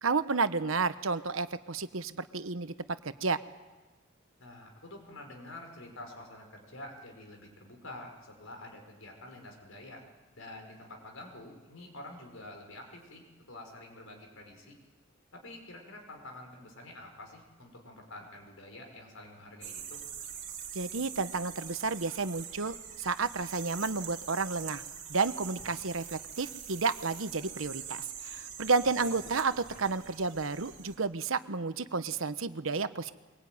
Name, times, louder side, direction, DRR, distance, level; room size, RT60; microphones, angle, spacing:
voice 1, 0.0-2.7 3.0-3.4 20.7-24.8 25.1-33.1, right 4 dB, 90° right, 12 dB, 1.1 m, -31 dB
voice 2, 4.4-10.0 10.3-14.8 15.3-20.0 29.0-29.1, left 1 dB, 90° left, 2 dB, 5.8 m, -48 dB
sound 1, 19.6-31.0, right 8 dB, 40° right, 3.2 m, -44 dB
23.0 x 22.0 x 9.5 m, 1.3 s
head